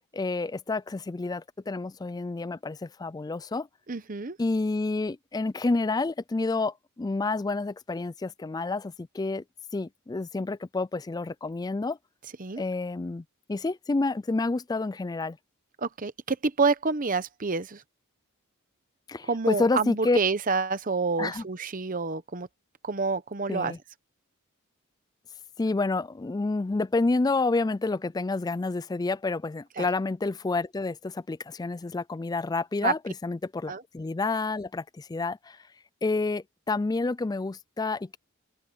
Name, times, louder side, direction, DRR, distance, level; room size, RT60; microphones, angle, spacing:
voice 1, 0.1-3.7 4.4-9.4 9.7-12.0 12.6-13.2 13.5-15.4 19.1-20.2 21.2-21.4 23.5-23.8 25.6-35.6 36.0-38.2, left 3 dB, 20° left, 0.3 m, -29 dB
voice 2, 3.9-4.4 12.4-12.6 15.8-17.8 19.2-22.5 22.8-23.7 29.8-29.9 32.8-32.9 33.7-33.8, right 4 dB, 40° right, 0.9 m, -28 dB
open air
head